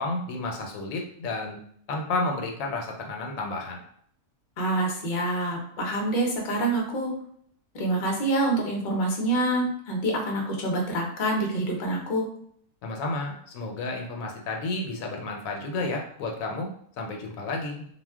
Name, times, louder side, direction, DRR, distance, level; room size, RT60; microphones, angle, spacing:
voice 1, 0.0-1.6 1.9-3.8 12.8-17.9, left 2 dB, 80° left, 1 dB, 1.0 m, -31 dB
voice 2, 4.6-7.1 7.7-12.3, right 1 dB, 50° left, 0 dB, 0.7 m, -26 dB
2.4 x 2.1 x 3.4 m, 0.64 s
omnidirectional pair, 1.4 m